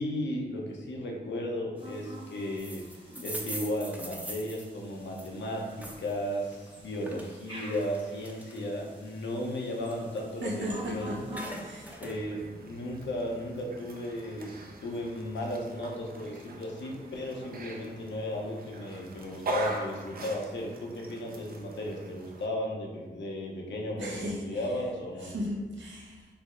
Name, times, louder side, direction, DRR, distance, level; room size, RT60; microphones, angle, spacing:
voice 1, 0.0-2.8 3.2-11.2 12.0-14.5 14.8-25.3, left 1 dB, 75° left, -1 dB, 0.7 m, -35 dB
sound 1, 1.8-12.0, equal, 30° right, 1.1 m, -49 dB
sound 2, 2.6-6.1 6.5-8.9 9.3-10.9 11.1-12.2, right 1 dB, 10° right, 0.5 m, -42 dB
voice 2, 10.4-11.9 24.0-24.4 25.2-26.3, equal, 80° right, -3 dB, 0.8 m, -36 dB
sound 3, 12.0-22.5, right 2 dB, 55° right, 0.5 m, -41 dB
3.3 x 2.0 x 3.6 m, 1.2 s
cardioid pair, 55°, 19 cm